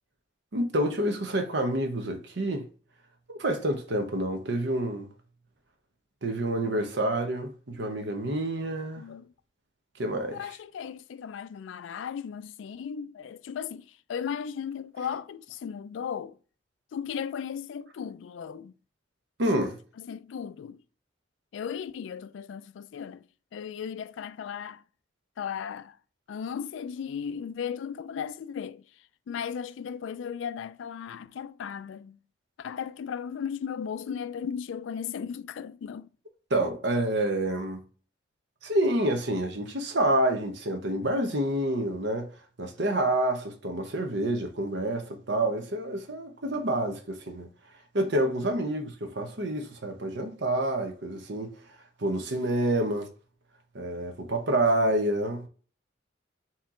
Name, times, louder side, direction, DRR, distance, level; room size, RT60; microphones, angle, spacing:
voice 1, 0.5-2.7 3.3-5.1 6.2-9.0 10.0-10.4 19.4-19.8 36.5-37.9 38.6-42.3 42.6-47.5 47.9-51.5 52.0-53.1 53.7-55.5, right 1 dB, 70° right, 0.9 m, -28 dB
voice 2, 9.0-9.3 10.3-16.4 16.9-18.8 20.0-20.8 21.5-23.2 23.5-24.8 25.4-26.0 26.3-32.2 32.6-36.1, left 7 dB, 80° left, 0.3 m, -36 dB
4.3 x 2.9 x 3.6 m
head